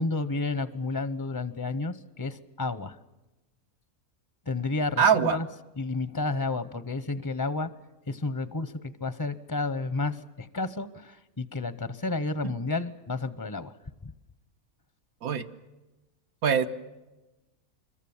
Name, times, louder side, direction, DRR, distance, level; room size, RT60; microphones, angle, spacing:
voice 1, 0.0-3.0 4.5-5.5 5.8-7.7 8.1-13.7 14.0-14.1, left 3 dB, 25° left, 15 dB, 0.6 m, -31 dB
voice 2, 5.0-5.4 15.2-15.5 16.4-16.7, right 7 dB, 80° right, 6 dB, 1.5 m, -22 dB
26.0 x 23.0 x 7.1 m, 1.1 s
omnidirectional pair, 1.5 m